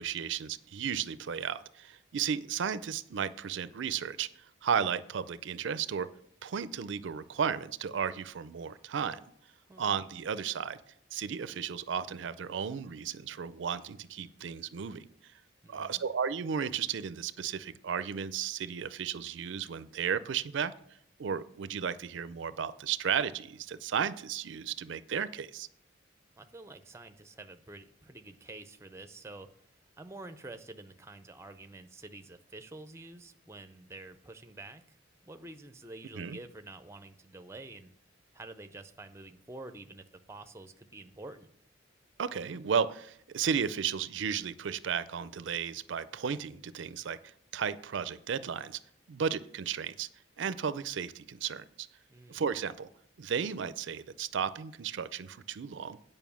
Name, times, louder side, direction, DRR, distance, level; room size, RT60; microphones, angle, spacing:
voice 1, 0.0-4.3 4.6-6.1 6.4-9.2 9.8-10.8 11.1-15.3 15.7-20.7 21.2-25.7 36.1-36.4 42.2-48.8 49.1-50.1 50.4-51.9 52.3-52.9 53.2-56.0, right 7 dB, 65° right, 15 dB, 0.4 m, -34 dB
voice 2, 15.6-16.1 26.4-29.5 30.0-37.9 38.3-41.5 52.1-52.5, right 2 dB, 15° right, 9 dB, 0.5 m, -48 dB
9.2 x 5.4 x 7.0 m, 0.67 s
head